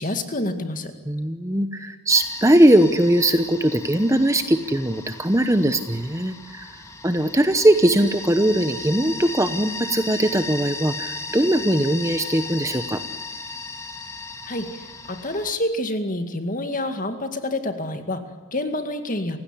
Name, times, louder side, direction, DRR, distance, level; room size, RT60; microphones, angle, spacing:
voice 1, 0.0-0.9 14.4-19.4, left 1 dB, 35° left, 7 dB, 2.2 m, -28 dB
voice 2, 1.1-6.7 7.0-13.0, right 1 dB, 15° right, 9 dB, 0.9 m, -20 dB
sound 1, 2.1-15.5, left 2 dB, 15° left, 2.0 m, -36 dB
29.5 x 17.0 x 10.0 m, 1.3 s
head